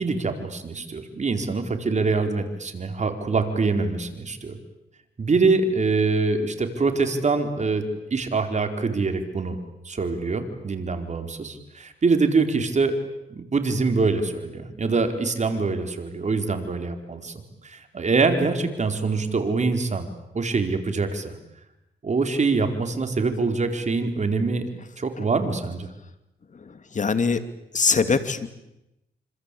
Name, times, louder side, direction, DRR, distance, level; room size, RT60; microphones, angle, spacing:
voice 1, 0.0-4.6 5.2-9.6 9.8-13.0 13.3-17.3 17.6-20.1 20.3-21.4 22.0-24.7 25.0-25.9, right 4 dB, 40° right, 6 dB, 4.5 m, -24 dB
voice 2, 26.5-27.5 27.7-28.5, left 5 dB, 45° left, 11 dB, 2.6 m, -23 dB
26.5 x 26.0 x 8.6 m, 0.89 s
cardioid pair, 70°, 18 cm